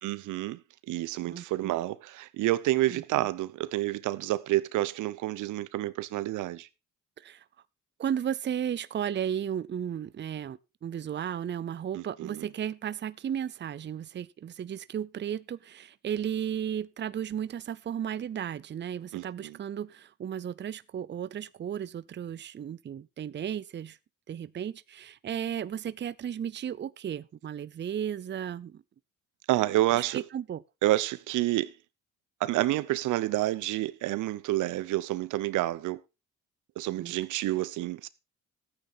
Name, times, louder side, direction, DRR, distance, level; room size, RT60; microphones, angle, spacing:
voice 1, 0.0-0.6 0.9-6.7 12.0-12.5 19.1-19.6 29.5-30.2 30.8-31.7 32.4-36.0 36.8-38.1, right 16 dB, 85° right, 0.7 m, -29 dB
voice 2, 1.3-1.8 2.9-3.3 7.2-7.4 8.0-24.0 24.3-28.8 29.9-30.6 37.0-37.1, right 9 dB, 35° right, 0.6 m, -34 dB
13.5 x 8.9 x 4.1 m
cardioid pair, 90°, 30 cm